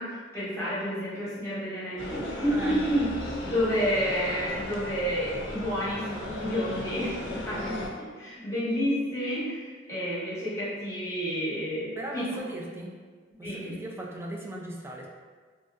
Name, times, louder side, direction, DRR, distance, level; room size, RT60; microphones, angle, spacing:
voice 1, 0.0-3.1 3.4-12.3 13.4-13.8, equal, 15° left, -10 dB, 0.9 m, -30 dB
sound 1, 2.0-7.9, left 1 dB, 90° left, 0.5 m, -36 dB
voice 2, 2.5-2.8 12.0-12.9 13.4-15.1, right 1 dB, 15° right, 0 dB, 0.3 m, -37 dB
3.0 x 2.6 x 2.3 m, 1.5 s
head